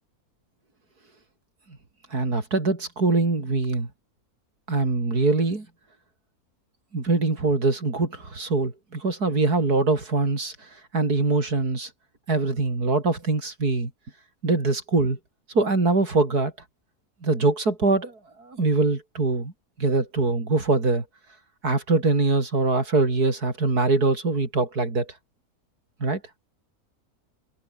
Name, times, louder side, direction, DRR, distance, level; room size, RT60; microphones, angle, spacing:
voice 1, 2.1-3.9 4.7-5.7 6.9-11.9 12.3-13.9 14.4-15.2 15.5-16.5 17.2-19.5 19.8-21.0 21.6-25.1 26.0-26.2, right 3 dB, 90° right, 4.9 m, -23 dB
omnidirectional pair, 1.6 m